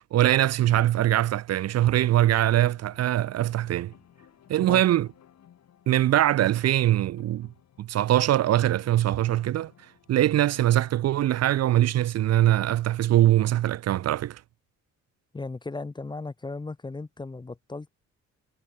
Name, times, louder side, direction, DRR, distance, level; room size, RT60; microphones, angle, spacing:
voice 1, 0.0-3.9 4.5-5.1 5.9-7.5 7.8-9.7 10.1-14.4, right 13 dB, 55° right, 0.5 m, -22 dB
sound 1, 1.8-11.6, left 10 dB, 60° left, 3.4 m, -57 dB
voice 2, 15.3-17.9, left 3 dB, 15° left, 0.6 m, -36 dB
cardioid pair, 90°, 30 cm